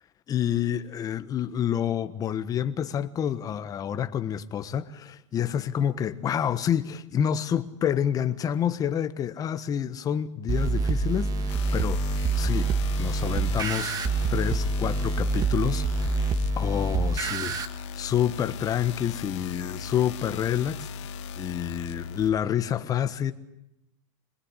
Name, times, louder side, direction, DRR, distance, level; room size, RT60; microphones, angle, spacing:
voice 1, 0.3-14.0 14.3-16.1 16.6-23.3, left 9 dB, 20° left, 1.3 m, -28 dB
sound 1, 10.5-17.7, right 3 dB, 25° right, 1.7 m, -26 dB
sound 2, 11.5-22.3, left 5 dB, 65° left, 2.1 m, -38 dB
26.5 x 20.0 x 10.0 m
supercardioid pair, 145°, 16 cm